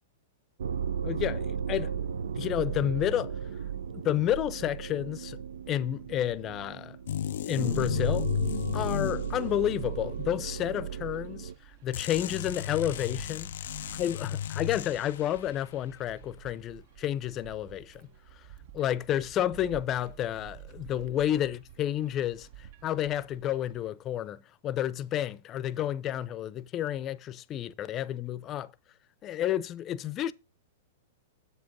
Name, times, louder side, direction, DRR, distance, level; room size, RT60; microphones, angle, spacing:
sound 1, 0.6-11.5, right 7 dB, 75° right, 0.5 m, -35 dB
voice 1, 1.0-1.9 2.4-3.4 4.0-5.4 5.7-7.0 7.5-8.3 8.7-11.5 11.8-13.5 13.9-18.1 18.7-22.5 22.8-28.7 29.2-30.3, left 11 dB, 30° left, 0.6 m, -30 dB
sound 2, 7.1-9.9 11.9-15.4, left 10 dB, 70° left, 0.3 m, -34 dB
sound 3, 10.0-23.9, right 11 dB, 60° right, 1.0 m, -51 dB
7.9 x 7.6 x 3.7 m
hypercardioid pair, 125°, 0 cm